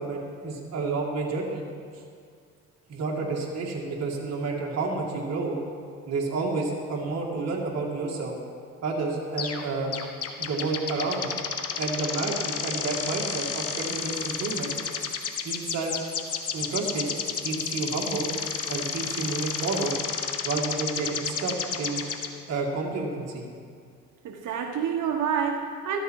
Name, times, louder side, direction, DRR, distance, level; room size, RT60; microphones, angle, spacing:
voice 1, 0.0-1.6 2.9-5.6 6.1-8.4 8.8-9.9 10.4-11.3 11.8-14.7 15.4-15.9 16.5-17.1 17.4-18.3 18.7-19.9 20.4-22.0 22.5-23.4, right 3 dB, 60° right, -2 dB, 2.4 m, -30 dB
sound 1, 9.4-9.6 9.9-22.3, left 6 dB, 55° left, 1.3 m, -31 dB
voice 2, 24.2-26.0, right 7 dB, 80° right, 3 dB, 1.2 m, -28 dB
14.0 x 13.5 x 4.7 m, 2.2 s
cardioid pair, 90°, 30 cm